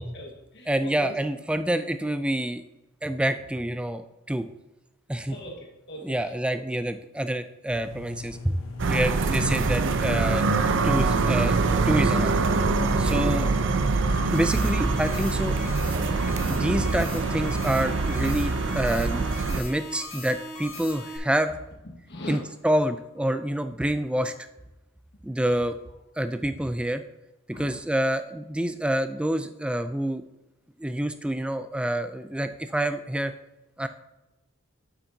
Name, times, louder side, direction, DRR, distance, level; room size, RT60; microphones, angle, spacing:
voice 1, 0.0-1.2 5.3-6.6 13.0-13.1 22.1-22.4 27.5-27.7, left 1 dB, 55° left, 0 dB, 1.6 m, -40 dB
voice 2, 0.7-2.6 3.0-4.5 5.1-5.4 6.0-8.6 8.9-10.5 10.8-11.6 11.9-12.3 13.0-13.5 14.3-15.5 16.5-21.5 22.3-24.3 25.2-25.7 26.2-27.0 27.6-30.2 30.8-33.3 33.8-33.9, right 1 dB, 5° right, 10 dB, 0.3 m, -27 dB
sound 1, 7.7-18.8, left 3 dB, 70° left, 1.1 m, -40 dB
sound 2, 8.8-19.6, right 3 dB, 60° right, 0.5 m, -24 dB
sound 3, 14.3-21.2, left 2 dB, 30° left, 1.6 m, -39 dB
8.9 x 7.2 x 2.7 m, 1.0 s
head